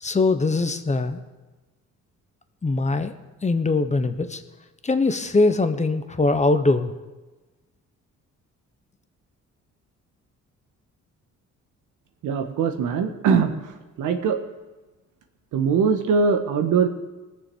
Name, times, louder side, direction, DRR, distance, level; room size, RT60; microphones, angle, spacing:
voice 1, 0.0-1.2 2.6-3.2 3.4-4.4 4.8-6.9, left 3 dB, 25° left, 9 dB, 1.1 m, -22 dB
voice 2, 12.2-13.5 14.0-14.4 15.5-16.9, right 5 dB, 85° right, 6 dB, 1.5 m, -21 dB
19.5 x 6.9 x 6.9 m, 1.2 s
cardioid pair, 90°, 30 cm